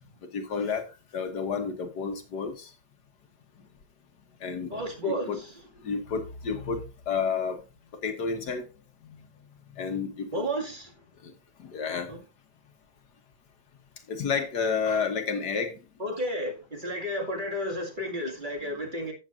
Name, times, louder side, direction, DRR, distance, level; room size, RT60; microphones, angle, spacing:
voice 1, 0.3-0.9 1.1-2.7 4.4-4.7 5.1-5.4 5.8-7.6 8.0-8.7 9.8-10.5 11.2-11.3 11.6-12.1 14.1-15.8, left 5 dB, 60° left, 1.7 m, -30 dB
voice 2, 4.7-5.5 10.3-10.9 12.1-12.2 16.0-19.1, equal, 25° right, 2.2 m, -32 dB
13.5 x 7.9 x 2.5 m
omnidirectional pair, 2.0 m